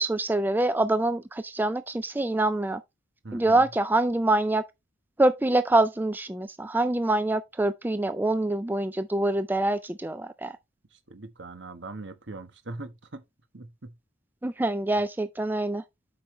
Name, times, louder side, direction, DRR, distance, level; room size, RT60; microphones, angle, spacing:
voice 1, 0.0-2.8 3.3-4.6 5.2-10.5 14.4-15.8, right 2 dB, 10° right, 0.3 m, -25 dB
voice 2, 3.2-3.7 10.9-13.2 13.5-13.9, right 2 dB, 65° right, 1.3 m, -41 dB
8.2 x 5.6 x 3.2 m
head